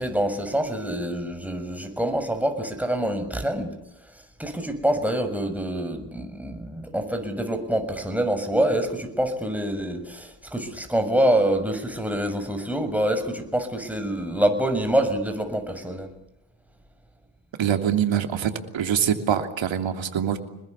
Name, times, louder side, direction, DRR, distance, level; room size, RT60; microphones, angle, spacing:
voice 1, 0.0-3.7 4.4-16.1, right 1 dB, 5° right, 6 dB, 6.8 m, -26 dB
voice 2, 17.6-20.4, right 9 dB, 70° right, 6 dB, 3.1 m, -24 dB
26.0 x 21.0 x 8.2 m, 0.86 s
supercardioid pair, 40°, 47 cm